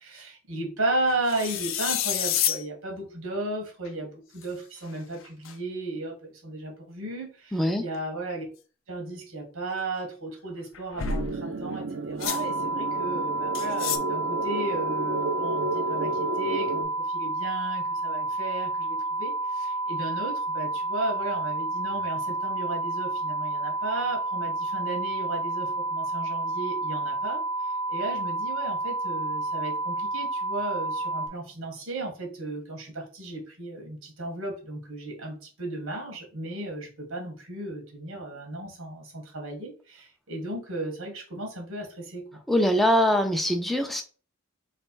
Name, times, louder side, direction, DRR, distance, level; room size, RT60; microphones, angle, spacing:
voice 1, 0.0-8.4 8.9-42.4, right 2 dB, 90° right, 1 dB, 1.5 m, -35 dB
sound 1, 1.3-2.6 3.9-4.0 4.4-4.5 5.2-5.5 10.7-11.4 12.2-12.4 13.6-14.0, left 10 dB, 70° left, 0.5 m, -28 dB
voice 2, 7.5-7.8 42.5-44.0, equal, ahead, 4 dB, 0.5 m, -23 dB
sound 2, 11.0-16.8, right 2 dB, 55° right, 0.4 m, -32 dB
sound 3, 12.2-31.3, right 2 dB, 75° right, 1.1 m, -30 dB
3.3 x 3.2 x 4.4 m, 0.38 s
head